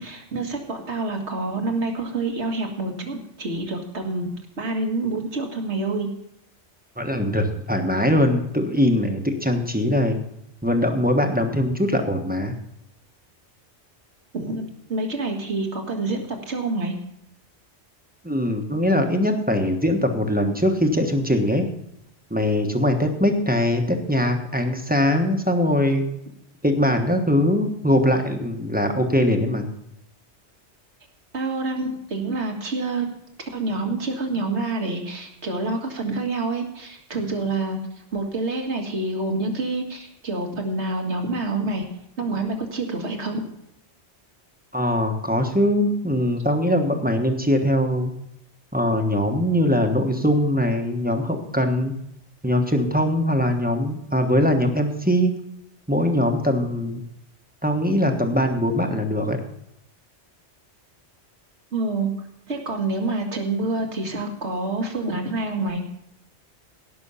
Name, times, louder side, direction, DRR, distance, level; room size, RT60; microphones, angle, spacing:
voice 1, 0.0-4.3 4.6-6.1 14.3-16.9 31.3-33.1 33.5-37.8 38.1-41.9 42.2-43.4 61.7-62.1 62.5-65.8, right 2 dB, 75° right, 3 dB, 2.2 m, -27 dB
voice 2, 7.0-10.2 10.6-12.5 18.2-21.6 22.3-26.0 26.6-29.7 44.7-48.1 48.7-51.9 52.4-55.3 55.9-57.0 57.6-59.4, left 1 dB, 10° right, 4 dB, 1.2 m, -21 dB
17.0 x 6.2 x 5.6 m, 0.79 s
omnidirectional pair, 1.2 m